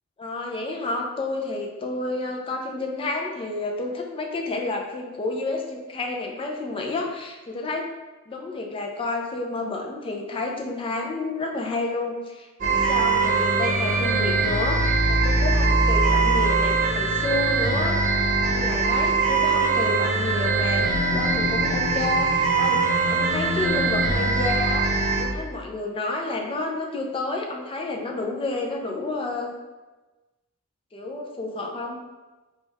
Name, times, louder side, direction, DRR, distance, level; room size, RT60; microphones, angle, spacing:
voice 1, 0.2-7.9 8.3-18.0 18.4-24.9 25.2-29.6 30.9-32.0, left 2 dB, 25° left, 1 dB, 0.4 m, -30 dB
sound 1, 12.6-25.3, right 3 dB, 35° right, 0.7 m, -22 dB
3.5 x 2.3 x 3.9 m, 1.2 s
head